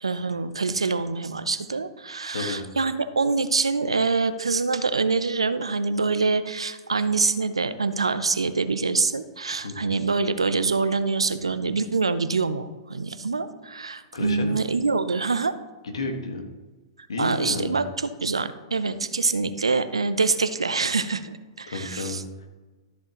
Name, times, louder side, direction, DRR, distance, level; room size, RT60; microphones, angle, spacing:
voice 1, 0.0-15.5 17.2-22.2, right 4 dB, 85° right, 12 dB, 0.7 m, -25 dB
voice 2, 9.6-10.0 14.1-14.6 15.8-16.4 17.1-17.8 21.7-22.2, left 2 dB, 75° left, 4 dB, 1.7 m, -31 dB
13.5 x 7.3 x 3.1 m, 1.3 s
hypercardioid pair, 110°, 3 cm